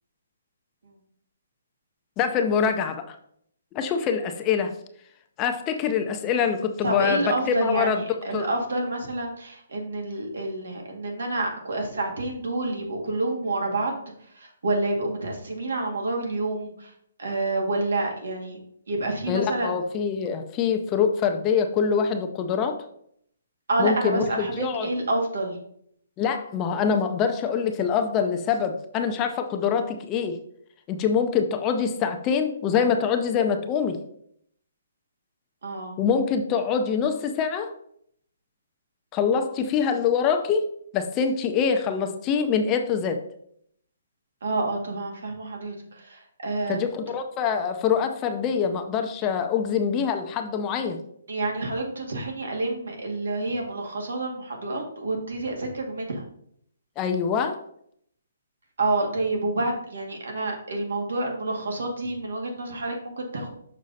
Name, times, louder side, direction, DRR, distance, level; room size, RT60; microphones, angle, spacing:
voice 1, 2.2-3.2 3.7-4.7 5.4-8.0 8.3-8.5 19.3-22.8 23.8-24.9 26.2-30.4 30.9-34.0 36.0-37.7 39.1-40.7 40.9-43.2 46.7-51.0 57.0-57.6, left 6 dB, 20° left, 6 dB, 0.5 m, -24 dB
voice 2, 6.8-14.0 14.3-16.9 17.2-18.6 18.9-19.7 23.7-25.6 35.6-36.0 44.4-46.9 51.3-56.2 58.8-63.5, right 2 dB, 80° right, 1 dB, 2.1 m, -28 dB
6.5 x 5.3 x 4.1 m, 0.68 s
hypercardioid pair, 165°, 0 cm